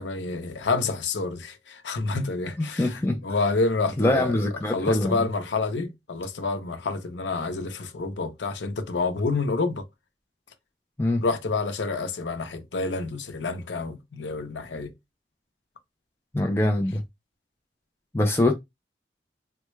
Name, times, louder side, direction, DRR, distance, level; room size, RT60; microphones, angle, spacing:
voice 1, 0.0-4.4 4.7-9.9 11.2-14.9, left 3 dB, 90° left, 0.7 m, -28 dB
voice 2, 2.6-3.2 4.0-5.2 11.0-11.2 16.3-17.0 18.1-18.5, left 1 dB, 15° left, 0.4 m, -23 dB
3.4 x 2.2 x 3.1 m
head